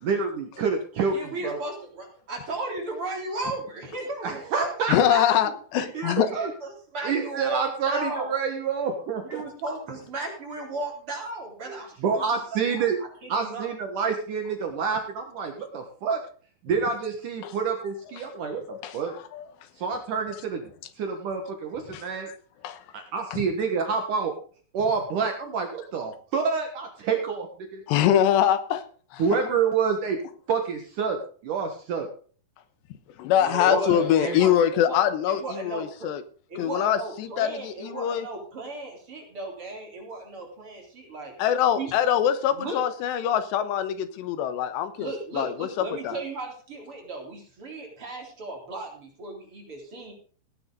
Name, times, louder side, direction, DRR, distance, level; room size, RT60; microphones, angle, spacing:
voice 1, 0.0-1.6 4.2-5.0 6.2-6.5 7.0-9.4 11.7-13.0 13.3-16.2 16.6-19.1 19.8-20.7 21.0-22.3 22.9-24.3 24.7-27.5 27.7-27.8 29.2-30.2 30.5-31.2 31.4-32.1 33.7-34.4, right 5 dB, 60° right, 4 dB, 2.5 m, -28 dB
voice 2, 1.1-4.7 5.0-8.3 9.2-13.7 33.3-35.0 35.3-36.1 36.5-41.3 41.7-41.9 42.5-42.8 45.0-50.1, right 2 dB, 30° right, 0 dB, 4.3 m, -35 dB
voice 3, 4.9-6.3 17.4-17.5 18.7-19.0 19.3-19.4 21.9-22.0 22.6-22.8 23.3-23.4 27.9-28.8 29.1-29.4 33.2-36.2 36.6-38.2 41.4-45.7 46.0-46.2, left 10 dB, 85° left, 11 dB, 3.3 m, -24 dB
17.5 x 9.9 x 3.9 m, 0.42 s
omnidirectional pair, 5.0 m